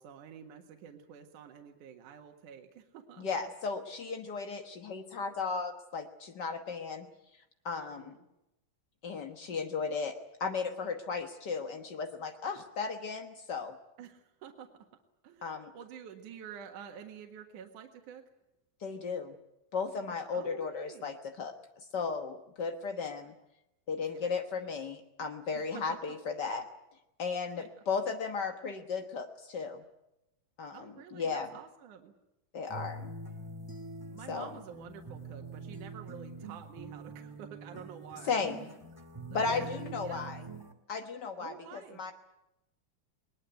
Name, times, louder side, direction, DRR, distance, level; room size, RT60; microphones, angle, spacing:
voice 1, 0.0-3.3 7.9-8.3 14.0-14.9 15.2-18.2 20.3-21.2 24.1-24.3 25.5-26.2 27.6-27.7 30.7-32.1 34.1-38.4 39.3-39.7 40.0-40.3 41.4-42.0, right 8 dB, 65° right, 3 dB, 3.0 m, -49 dB
voice 2, 3.2-7.1 7.6-8.1 9.0-10.1 10.4-13.8 15.4-15.7 18.8-19.4 19.7-21.5 21.9-23.3 23.9-26.6 27.2-29.8 30.6-31.5 32.5-33.1 34.3-34.5 38.2-38.6 39.3-40.4 40.9-42.1, left 5 dB, 80° left, 5 dB, 0.9 m, -35 dB
sound 1, 32.7-40.7, right 2 dB, 10° right, 1.0 m, -45 dB
21.0 x 20.5 x 9.3 m, 0.89 s
omnidirectional pair, 3.9 m